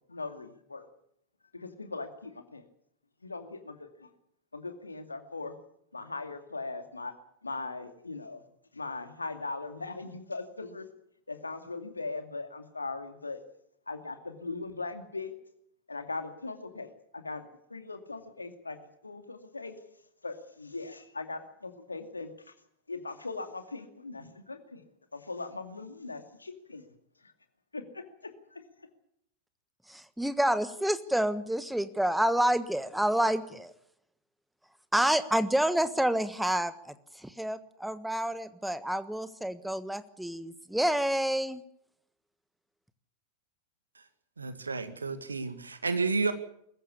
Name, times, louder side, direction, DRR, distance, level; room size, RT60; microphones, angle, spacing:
voice 1, 0.1-0.9 1.5-2.6 3.2-4.1 4.5-5.5 5.9-7.1 7.4-8.4 8.7-10.9 11.3-13.4 13.9-15.3 15.9-17.4 17.7-18.8 19.0-19.9 20.2-22.3 22.9-24.8 25.1-26.8 27.7-28.6, left 3 dB, 80° left, 7 dB, 2.4 m, -39 dB
voice 2, 29.9-33.7 34.9-41.6, right 1 dB, 5° right, 13 dB, 1.4 m, -28 dB
voice 3, 44.4-46.3, right 4 dB, 75° right, 10 dB, 2.0 m, -31 dB
22.0 x 15.0 x 8.5 m, 0.74 s
figure-of-eight pair, 90°, 0 cm